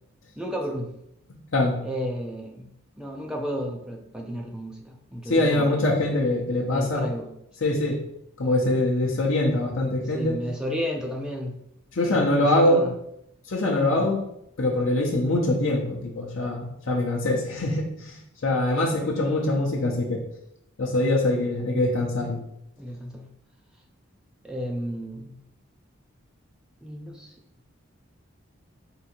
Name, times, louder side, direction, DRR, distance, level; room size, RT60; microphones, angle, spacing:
voice 1, 0.4-0.9 1.8-2.7 3.0-5.8 6.7-7.4 10.0-11.5 12.1-13.0 13.9-14.1 22.8-23.3 24.4-25.4 26.8-27.3, equal, 5° right, 1 dB, 0.5 m, -33 dB
voice 2, 5.3-7.0 7.6-8.0 8.4-10.3 12.0-12.8 13.5-14.2 14.6-18.2 18.4-20.2 20.8-22.4, left 1 dB, 70° left, -2 dB, 0.8 m, -23 dB
3.8 x 2.7 x 4.3 m, 0.76 s
head